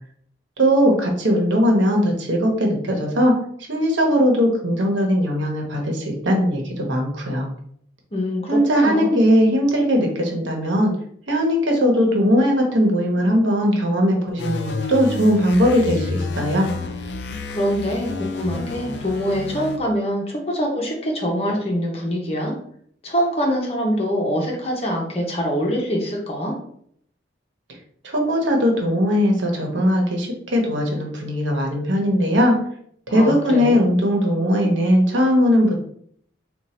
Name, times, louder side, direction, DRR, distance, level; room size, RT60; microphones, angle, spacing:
voice 1, 0.6-3.3 3.7-7.5 8.5-10.9 11.3-16.7 28.0-32.5 33.1-35.7, equal, 90° right, 1 dB, 1.1 m, -19 dB
voice 2, 8.1-9.1 17.5-22.5 23.0-26.5 33.1-33.8, equal, 35° left, -1 dB, 1.0 m, -24 dB
sound 1, 14.4-19.8, left 3 dB, 70° left, 0.5 m, -30 dB
3.8 x 2.6 x 4.3 m, 0.65 s
head